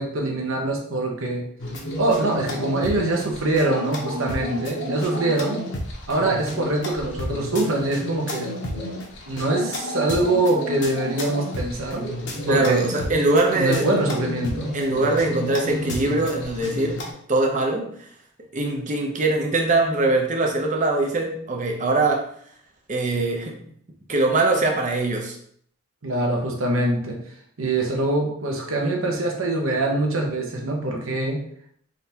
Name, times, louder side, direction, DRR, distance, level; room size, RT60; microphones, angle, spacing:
voice 1, 0.0-1.4 2.0-5.6 6.1-8.5 9.3-12.0 12.5-12.8 13.5-14.7 26.0-27.2 27.6-31.4, right 2 dB, 75° right, 0 dB, 1.0 m, -24 dB
sound 1, 1.6-17.1, left 1 dB, 55° left, 0.9 m, -31 dB
voice 2, 12.5-13.9 14.7-17.0 17.3-18.1 18.5-22.3 22.9-23.6 24.1-25.4, right 2 dB, 35° right, 1 dB, 0.7 m, -22 dB
3.7 x 3.4 x 2.8 m, 0.64 s
head